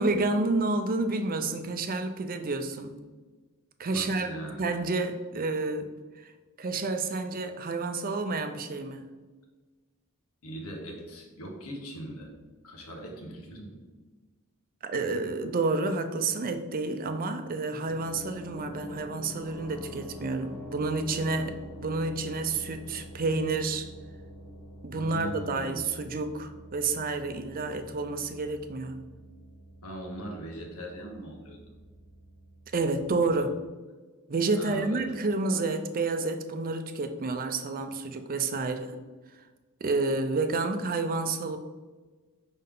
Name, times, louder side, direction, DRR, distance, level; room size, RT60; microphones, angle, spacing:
voice 1, 0.0-3.0 3.8-4.3 4.6-6.3 6.6-9.1 14.8-23.9 24.8-29.0 32.7-33.6 34.3-39.0 39.8-41.6, right 3 dB, 40° right, 8 dB, 0.5 m, -30 dB
voice 2, 3.9-4.7 10.4-12.3 12.6-13.8 24.9-25.8 29.8-31.6 34.5-35.1, right 1 dB, 90° left, 1 dB, 1.4 m, -40 dB
sound 1, 17.9-33.5, equal, 10° left, 1.2 m, -46 dB
5.6 x 5.3 x 3.8 m, 1.3 s
head